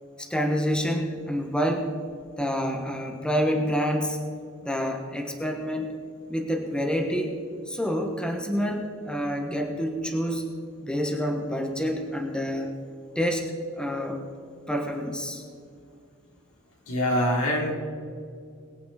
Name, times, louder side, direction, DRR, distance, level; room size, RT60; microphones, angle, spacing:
voice 1, 0.2-1.9 2.4-4.2 4.6-5.9 6.3-7.4 7.7-10.4 10.8-12.7 13.1-14.2 14.7-15.4, equal, 5° left, 2 dB, 1.4 m, -28 dB
voice 2, 16.9-17.8, equal, 80° left, -2 dB, 4.1 m, -24 dB
22.0 x 8.6 x 4.4 m, 2.3 s
head